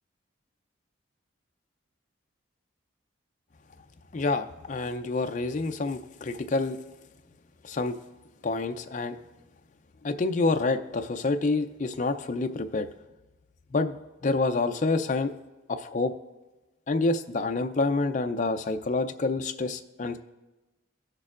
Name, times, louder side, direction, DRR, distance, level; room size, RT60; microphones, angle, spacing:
voice 1, 4.1-6.8 7.7-8.0 8.4-9.2 10.0-12.9 13.7-14.0 14.2-15.3 15.7-16.1 16.9-20.2, left 3 dB, 40° left, 6 dB, 0.4 m, -27 dB
17.5 x 6.6 x 2.4 m, 1.1 s
head